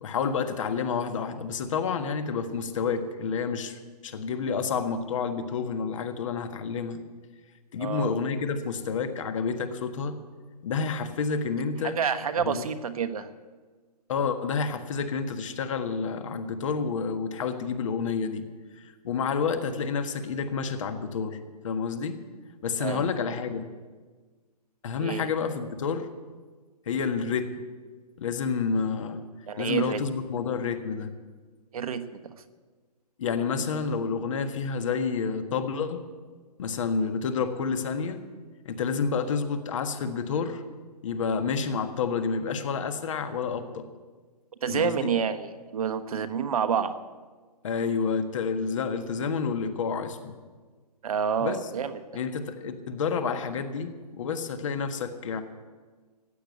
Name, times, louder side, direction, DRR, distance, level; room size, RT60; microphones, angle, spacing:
voice 1, 0.0-7.0 7.7-10.2 10.6-12.0 12.4-12.6 14.1-18.4 18.8-21.4 21.6-22.2 22.6-23.7 24.8-26.1 26.9-27.6 28.2-29.2 29.6-31.1 33.2-36.0 36.6-38.2 38.6-40.6 41.0-43.8 44.7-45.1 47.6-50.3 51.4-51.6 52.1-55.4, left 5 dB, 50° left, 8 dB, 1.6 m, -29 dB
voice 2, 7.8-8.1 11.8-13.3 22.8-23.1 25.0-25.3 29.5-30.0 31.7-32.3 44.6-46.9 51.0-52.0, right 7 dB, 60° right, 9 dB, 1.2 m, -28 dB
15.0 x 9.3 x 8.4 m, 1.4 s
hypercardioid pair, 145°, 21 cm